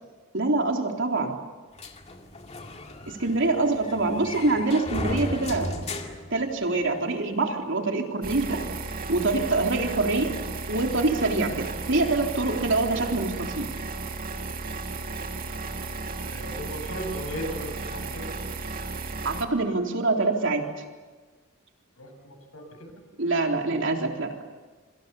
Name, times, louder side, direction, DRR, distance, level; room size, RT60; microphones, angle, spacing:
voice 1, 0.3-1.4 3.1-5.7 6.3-8.6 9.1-10.3 10.7-13.7 19.2-20.6 23.2-24.3, right 2 dB, 60° right, 2 dB, 3.7 m, -25 dB
sound 1, 1.8-7.0, left 1 dB, 30° left, 2.1 m, -35 dB
sound 2, 8.2-19.4, right 3 dB, 40° right, 2.2 m, -34 dB
voice 2, 16.3-18.3 22.0-22.9, equal, 85° left, 4 dB, 7.7 m, -37 dB
27.5 x 26.0 x 7.2 m, 1.4 s
head